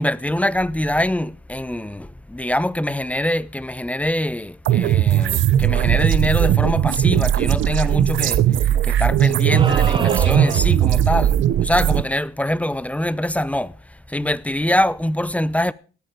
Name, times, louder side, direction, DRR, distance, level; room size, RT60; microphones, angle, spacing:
voice 1, 0.0-13.7 14.1-15.7, left 1 dB, 5° left, 0.6 m, -24 dB
sound 1, 4.6-12.0, right 11 dB, 75° right, 0.9 m, -18 dB
sound 2, 9.5-10.9, right 4 dB, 25° right, 0.9 m, -27 dB
17.0 x 8.5 x 5.1 m
cardioid pair, 90°, 20 cm